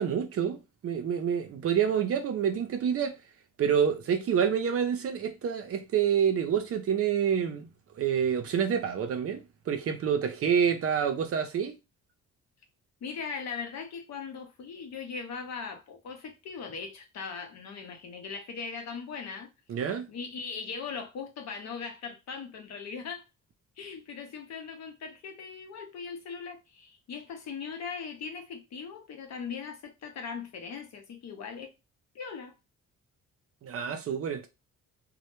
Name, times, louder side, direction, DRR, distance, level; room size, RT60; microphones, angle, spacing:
voice 1, 0.0-3.1 3.6-7.7 8.0-11.8 19.7-20.1 33.6-34.5, right 8 dB, 50° right, 0.5 m, -27 dB
voice 2, 13.0-19.5 20.1-23.3 23.8-31.7 32.1-32.5, left 5 dB, 60° left, 0.7 m, -39 dB
2.1 x 2.0 x 3.0 m
cardioid pair, 90°, 30 cm